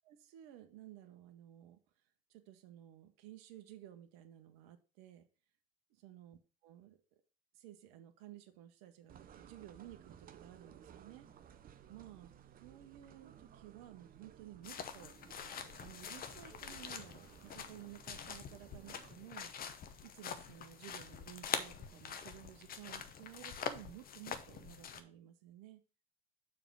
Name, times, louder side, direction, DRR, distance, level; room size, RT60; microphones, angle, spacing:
voice 1, 0.0-1.8 2.3-5.3 5.9-6.4 6.6-7.0 7.5-11.3 11.9-12.3 12.6-15.1 15.8-19.5 20.0-25.8, right 13 dB, 55° right, 8 dB, 1.0 m, -55 dB
sound 1, 9.1-19.1, right 9 dB, 30° right, 0.7 m, -59 dB
sound 2, 14.6-25.0, left 7 dB, 30° left, 0.8 m, -45 dB
6.9 x 3.6 x 6.1 m, 0.36 s
hypercardioid pair, 75°, 29 cm